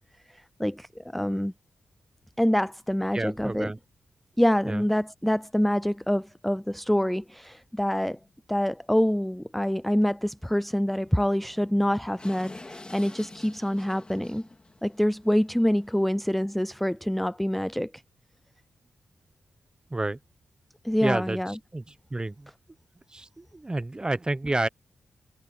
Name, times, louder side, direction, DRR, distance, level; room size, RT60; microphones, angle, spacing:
voice 1, 0.3-1.5 2.4-3.7 4.4-8.2 8.5-14.5 14.8-17.9 20.8-21.5, equal, 5° left, 0.3 m, -26 dB
voice 2, 3.1-3.8 4.7-4.8 19.9-20.2 21.0-22.5 23.1-24.7, right 2 dB, 20° right, 0.9 m, -30 dB
sound 1, 6.2-6.3 6.6-6.7 7.4-7.5 7.8-7.9 8.2-8.3 10.0-10.1 10.4-10.5 11.0-16.4, left 2 dB, 25° left, 2.5 m, -48 dB
cardioid pair, 65°, 4 cm